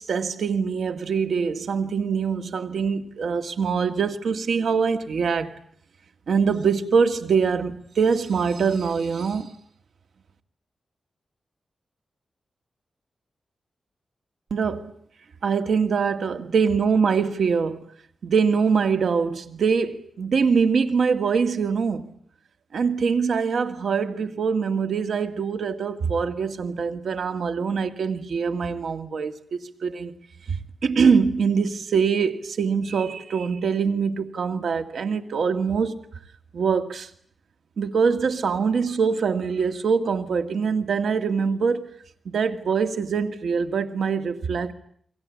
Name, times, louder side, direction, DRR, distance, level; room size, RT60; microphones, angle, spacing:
voice 1, 0.0-5.5 6.3-9.5 14.5-14.9 15.4-17.8 18.2-22.1 22.7-29.3 29.8-30.2 30.5-36.0 36.5-37.1 37.8-41.9 42.3-44.7, right 5 dB, 80° right, 2.0 m, -23 dB
29.0 x 23.5 x 8.5 m
wide cardioid pair, 95°, 0 cm